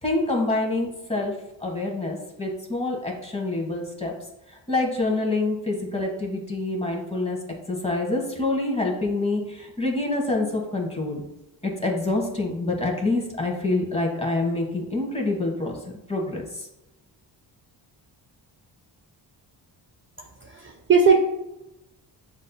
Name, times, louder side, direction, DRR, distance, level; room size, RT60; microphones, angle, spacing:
voice 1, 0.0-1.3 1.6-4.1 4.7-7.4 7.7-11.2 11.6-16.7, left 2 dB, 15° left, 0 dB, 1.0 m, -26 dB
voice 2, 20.4-21.2, right 5 dB, 30° right, 0 dB, 0.4 m, -19 dB
7.3 x 2.6 x 2.2 m, 0.92 s
cardioid pair, 90°, 44 cm